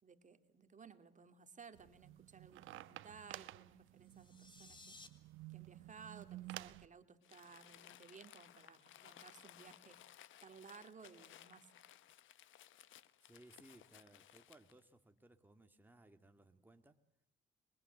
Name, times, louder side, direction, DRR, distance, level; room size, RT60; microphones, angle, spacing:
voice 1, 0.0-5.0 5.5-10.0 10.4-11.7, right 5 dB, 40° right, 8 dB, 2.5 m, -58 dB
sound 1, 1.7-6.9, right 15 dB, 85° right, 1.0 m, -52 dB
sound 2, 4.0-5.1, left 3 dB, 25° left, 3.5 m, -58 dB
Crumpling crinkling, 7.2-14.8, left 12 dB, 80° left, 1.2 m, -61 dB
voice 2, 13.2-17.0, right 2 dB, 10° right, 5 dB, 2.2 m, -63 dB
27.0 x 23.0 x 8.0 m, 0.74 s
cardioid pair, 90°, 20 cm